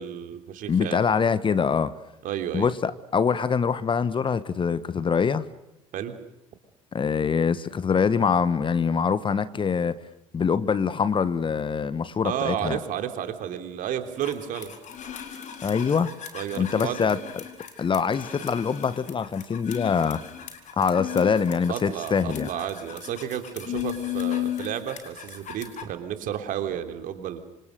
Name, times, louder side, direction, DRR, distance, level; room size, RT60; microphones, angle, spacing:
voice 1, 0.0-1.0 2.2-2.7 5.9-6.2 12.2-14.7 16.3-17.0 21.7-27.4, right 10 dB, 50° right, 3.3 m, -32 dB
voice 2, 0.7-1.9 2.5-5.5 6.9-10.0 10.3-12.8 15.6-16.1 16.6-17.2 17.8-20.2 20.8-22.5, left 6 dB, 30° left, 1.3 m, -24 dB
sound 1, 14.2-25.8, left 12 dB, 45° left, 4.4 m, -35 dB
27.5 x 26.5 x 6.7 m
figure-of-eight pair, 65°, 17 cm